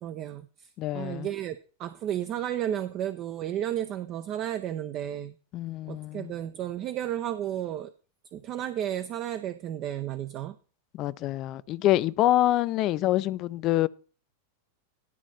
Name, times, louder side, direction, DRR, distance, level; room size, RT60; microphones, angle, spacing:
voice 1, 0.0-0.5 0.9-5.4 5.9-7.9 8.3-10.6, right 11 dB, 35° right, 0.6 m, -32 dB
voice 2, 0.8-1.3 5.5-6.3 10.9-13.9, left 14 dB, 35° left, 0.5 m, -26 dB
11.0 x 4.0 x 7.6 m
figure-of-eight pair, 90°, 0 cm